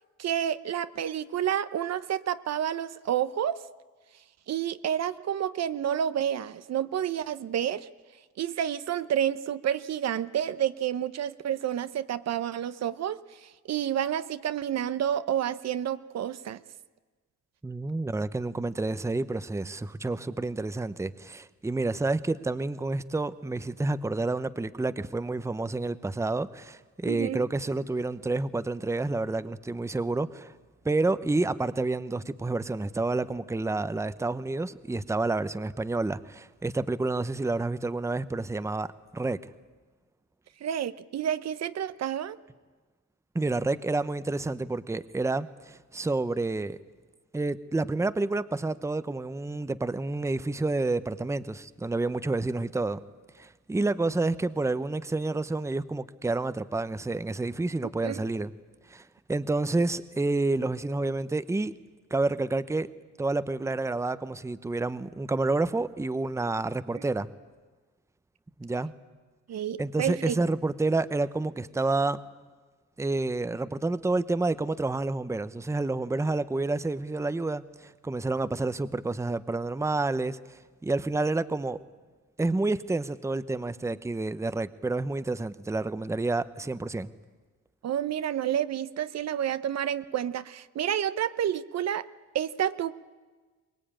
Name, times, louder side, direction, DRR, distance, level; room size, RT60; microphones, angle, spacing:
voice 1, 0.2-3.6 4.5-7.9 8.4-16.6 27.1-27.4 40.6-42.4 58.0-58.2 69.5-70.4 87.8-92.1 92.3-92.9, right 10 dB, 60° right, 0.8 m, -29 dB
voice 2, 17.6-30.5 30.8-38.9 39.1-39.4 43.3-46.8 47.3-53.0 53.3-58.5 58.9-61.7 62.1-62.9 63.2-67.3 68.6-68.9 69.8-72.2 73.0-81.8 82.4-87.1, right 2 dB, 10° right, 0.8 m, -29 dB
23.5 x 19.5 x 8.9 m
cardioid pair, 90°, 30 cm